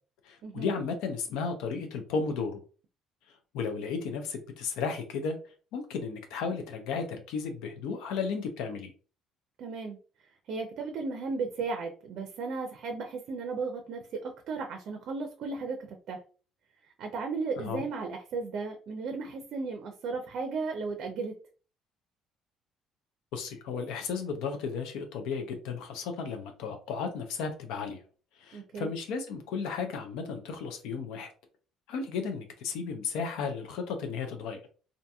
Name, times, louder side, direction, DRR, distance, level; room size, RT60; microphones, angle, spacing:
voice 1, 0.2-2.6 3.5-5.4 5.7-8.9 17.6-17.8 23.3-28.0 28.4-31.3 31.9-34.6, left 5 dB, 80° left, 6 dB, 0.4 m, -34 dB
voice 2, 9.6-10.0 10.5-16.2 17.0-21.3 28.5-28.9, right 4 dB, 65° right, 4 dB, 0.4 m, -35 dB
2.7 x 2.5 x 2.2 m, 0.38 s
supercardioid pair, 80°, 0 cm